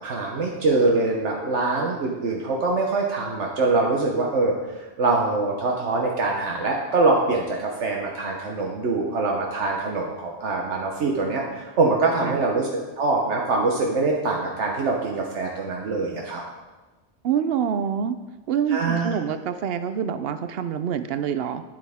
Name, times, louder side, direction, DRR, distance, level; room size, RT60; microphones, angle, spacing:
voice 1, 0.0-4.5 5.0-12.7 13.0-16.4 18.7-19.1, right 3 dB, 80° right, -1 dB, 1.3 m, -24 dB
voice 2, 17.2-18.2 18.5-21.6, right 8 dB, 65° right, 11 dB, 0.8 m, -26 dB
9.2 x 8.3 x 3.6 m, 1.2 s
omnidirectional pair, 1.2 m